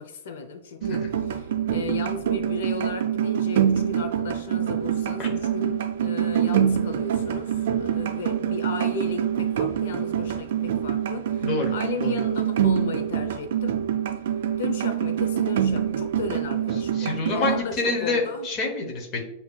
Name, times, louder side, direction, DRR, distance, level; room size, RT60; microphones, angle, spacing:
voice 1, 0.0-13.8 14.6-18.5, left 4 dB, 80° left, 7 dB, 0.5 m, -35 dB
sound 1, 0.8-17.6, right 9 dB, 70° right, 0.4 m, -25 dB
voice 2, 11.4-11.7 12.0-12.1 16.9-19.2, left 3 dB, 25° left, 1 dB, 0.8 m, -27 dB
7.2 x 2.7 x 2.2 m, 0.90 s
supercardioid pair, 180°, 0 cm